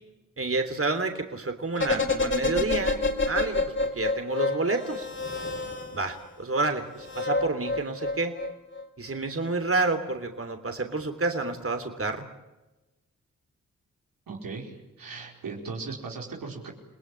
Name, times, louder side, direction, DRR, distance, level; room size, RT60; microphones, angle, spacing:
voice 1, 0.4-3.6 3.9-5.1 5.9-8.3 9.0-12.3, right 3 dB, 45° right, 7 dB, 3.3 m, -29 dB
sound 1, 1.8-6.2 7.0-8.8 9.1-9.2, left 2 dB, 35° left, 4.3 m, -28 dB
voice 2, 14.3-16.7, right 4 dB, 90° right, 0 dB, 4.9 m, -38 dB
30.0 x 19.0 x 10.0 m, 1.1 s
cardioid pair, 45°, 33 cm